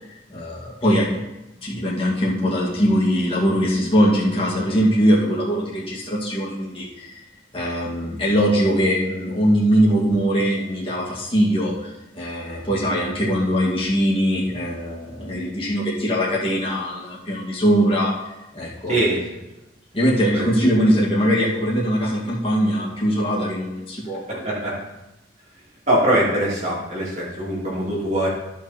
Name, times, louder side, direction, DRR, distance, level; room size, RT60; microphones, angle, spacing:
voice 1, 0.3-1.1 1.6-7.2 7.5-11.7 12.1-18.1 18.5-19.0 19.9-24.5, equal, 30° left, -7 dB, 2.2 m, -21 dB
voice 2, 18.9-19.2 20.3-20.9 24.4-24.7 25.9-28.3, right 1 dB, 35° right, -6 dB, 2.9 m, -22 dB
14.0 x 5.7 x 4.2 m, 0.96 s
head